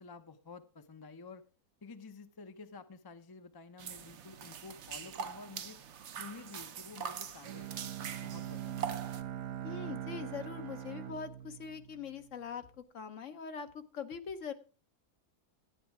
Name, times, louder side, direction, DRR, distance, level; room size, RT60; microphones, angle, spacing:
voice 1, 0.0-1.4 1.8-5.8 6.2-9.4, left 4 dB, 20° left, 8 dB, 0.6 m, -51 dB
sound 1, 3.8-9.2, right 7 dB, 55° right, 1.0 m, -43 dB
Bowed string instrument, 7.4-12.4, right 11 dB, 75° right, 1.2 m, -42 dB
voice 2, 9.6-14.5, left 6 dB, 60° left, 9 dB, 1.1 m, -42 dB
12.0 x 9.6 x 4.7 m, 0.35 s
omnidirectional pair, 1.6 m